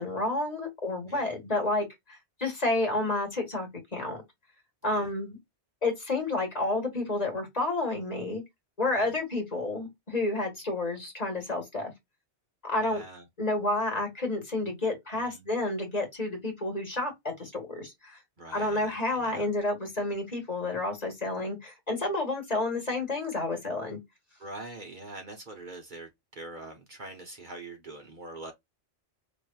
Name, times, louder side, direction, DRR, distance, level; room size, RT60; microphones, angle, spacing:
voice 1, 0.0-4.2 4.8-5.4 5.8-8.4 8.8-11.9 12.6-13.0 13.4-18.2 18.5-24.0, left 2 dB, 35° left, 1.6 m, -30 dB
voice 2, 1.0-1.4 4.9-5.1 9.0-9.1 12.8-13.3 15.1-15.5 18.4-19.5 24.4-28.5, right 2 dB, 45° right, 1.0 m, -44 dB
5.1 x 3.1 x 2.3 m
omnidirectional pair, 1.2 m